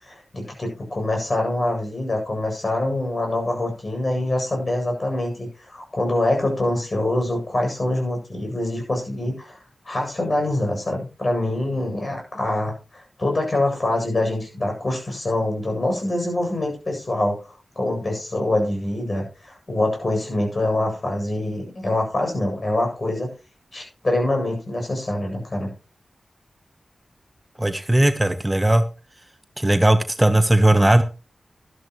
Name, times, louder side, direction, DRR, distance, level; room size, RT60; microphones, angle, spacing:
voice 1, 0.0-9.6 9.8-17.4 17.8-23.3 23.7-25.7, left 1 dB, 45° left, 1 dB, 7.9 m, -25 dB
voice 2, 27.6-28.8 29.6-31.0, right 1 dB, 15° right, 9 dB, 1.1 m, -17 dB
13.0 x 12.5 x 3.1 m, 0.32 s
cardioid pair, 45°, 0 cm